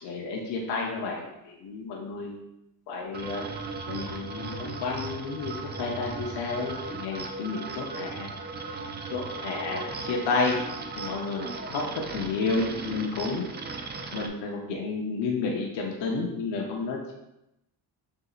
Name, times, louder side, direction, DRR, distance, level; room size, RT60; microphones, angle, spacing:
voice 1, 0.0-2.4 2.9-3.5 3.9-8.3 9.1-10.6 10.9-11.8 12.1-13.5 13.7-13.8 14.1-17.1, left 4 dB, 70° left, -1 dB, 0.8 m, -31 dB
sound 1, 3.1-14.3, right 4 dB, 25° right, 0.4 m, -37 dB
6.7 x 2.8 x 2.4 m, 0.88 s
cardioid pair, 105°, 44 cm